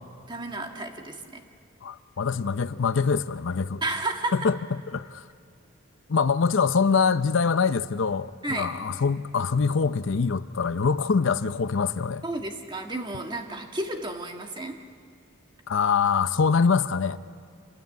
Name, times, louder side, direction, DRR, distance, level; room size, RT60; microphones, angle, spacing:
voice 1, 0.3-1.4 3.8-4.4 8.4-8.7 12.2-14.8, right 2 dB, 20° right, 4 dB, 1.6 m, -32 dB
voice 2, 1.8-3.8 4.4-4.6 4.9-5.2 6.1-12.2 15.7-17.2, left 5 dB, 65° left, 13 dB, 0.6 m, -24 dB
26.5 x 20.5 x 9.4 m, 2.2 s
head